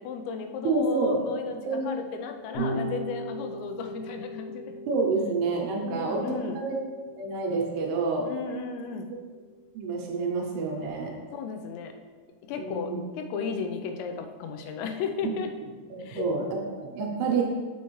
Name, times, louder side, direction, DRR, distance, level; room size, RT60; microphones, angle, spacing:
voice 1, 0.0-1.6 1.9-4.8 5.8-6.6 8.2-9.1 11.3-12.0 12.4-15.5 16.0-16.3, left 5 dB, 85° left, 6 dB, 2.8 m, -34 dB
voice 2, 0.6-1.2 1.7-1.9 2.6-2.8 4.9-6.2 6.6-6.8 7.2-8.3 9.7-11.1 12.6-13.0 15.2-15.3 15.9-17.4, right 4 dB, 75° right, 0 dB, 2.7 m, -28 dB
Electric guitar / Bass guitar, 2.5-8.9, equal, 60° left, 1.7 m, -39 dB
7.2 x 5.7 x 3.1 m, 1.5 s
omnidirectional pair, 5.0 m